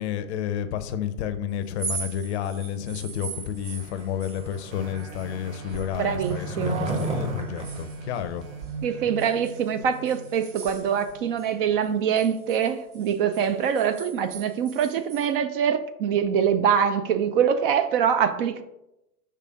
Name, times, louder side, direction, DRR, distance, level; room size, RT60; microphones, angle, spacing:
voice 1, 0.0-8.4, left 9 dB, 50° left, 10 dB, 0.7 m, -31 dB
sound 1, 1.6-5.9 6.2-8.7 9.2-11.5 11.8-15.3, right 6 dB, 75° right, 1.2 m, -41 dB
Skateboard, 3.7-9.1, right 1 dB, 15° right, 1.0 m, -35 dB
sound 2, 4.7-11.9 12.4-12.5, right 4 dB, 60° right, 1.2 m, -39 dB
voice 2, 6.0-7.0 8.8-18.6, right 8 dB, 40° right, 9 dB, 0.5 m, -24 dB
5.7 x 3.4 x 4.9 m, 0.87 s
figure-of-eight pair, 95°, 45 cm